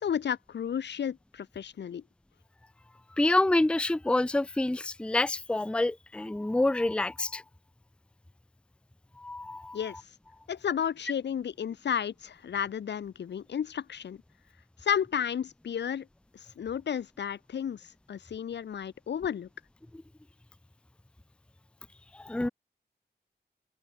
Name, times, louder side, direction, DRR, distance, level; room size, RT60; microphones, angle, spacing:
voice 1, 0.0-2.0 9.7-10.0 10.5-14.2 14.8-16.1 16.3-19.5, left 8 dB, 90° left, 1.9 m, -32 dB
voice 2, 3.2-7.4 9.2-9.8 22.1-22.5, left 2 dB, 5° left, 0.5 m, -27 dB
cardioid pair, 55°, 18 cm